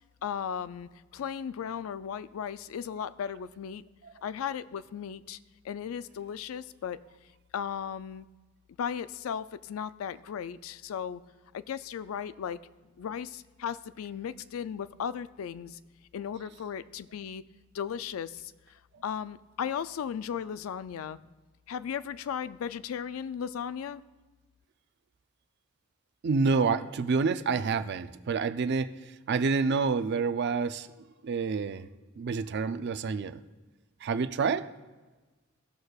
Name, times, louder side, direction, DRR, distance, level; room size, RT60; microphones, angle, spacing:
voice 1, 0.2-3.8 4.2-5.4 5.6-7.0 7.5-8.3 8.8-11.2 11.5-12.6 13.0-15.8 16.1-17.4 17.7-18.5 19.0-21.2 21.7-24.0, left 8 dB, 90° left, 15 dB, 0.3 m, -36 dB
voice 2, 26.2-30.9 31.2-31.9 32.2-33.4 34.0-34.7, right 4 dB, 55° right, 11 dB, 0.4 m, -28 dB
17.0 x 6.4 x 2.3 m, 1.3 s
head